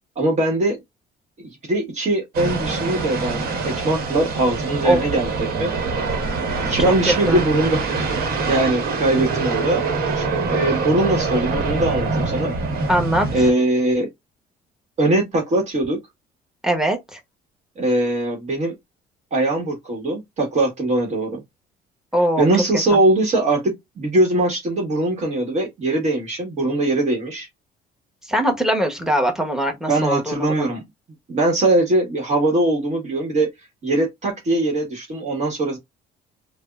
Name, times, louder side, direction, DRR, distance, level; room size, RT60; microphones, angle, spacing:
voice 1, 0.2-0.8 1.4-5.7 6.6-7.9 8.1-9.8 10.1-12.5 13.3-14.1 15.0-16.0 17.8-18.7 19.3-21.4 22.4-27.5 29.9-30.8 31.3-33.5 33.8-35.8, right 2 dB, 45° right, 1.3 m, -21 dB
sound 1, 2.3-13.5, right 4 dB, 60° right, 1.2 m, -24 dB
voice 2, 6.8-7.4 12.9-13.3 16.6-17.2 22.1-22.5 22.9-23.0 28.2-30.7, equal, 5° right, 1.0 m, -21 dB
3.4 x 2.1 x 2.3 m
cardioid pair, 110°, 17 cm